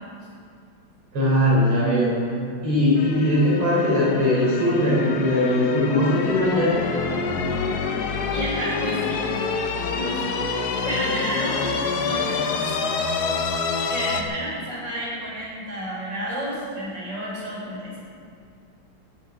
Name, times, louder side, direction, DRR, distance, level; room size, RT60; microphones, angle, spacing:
voice 1, 1.1-2.1 2.6-6.8, left 1 dB, 80° right, -7 dB, 4.8 m, -20 dB
sound 1, 3.0-14.2, left 4 dB, 55° left, 1.3 m, -27 dB
voice 2, 8.3-9.3 9.9-10.5 10.8-12.8 13.9-18.0, right 1 dB, 55° right, -6 dB, 5.3 m, -31 dB
15.0 x 7.4 x 9.3 m, 2.4 s
omnidirectional pair, 2.3 m